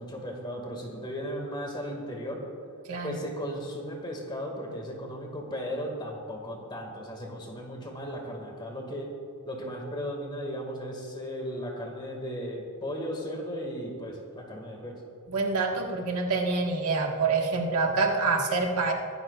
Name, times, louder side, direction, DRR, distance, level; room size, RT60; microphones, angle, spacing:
voice 1, 0.0-2.4 3.0-9.1 9.4-15.0, equal, 20° left, 1 dB, 2.0 m, -36 dB
voice 2, 15.3-18.9, right 4 dB, 80° right, 1 dB, 1.6 m, -26 dB
22.5 x 12.0 x 2.5 m, 2.7 s
head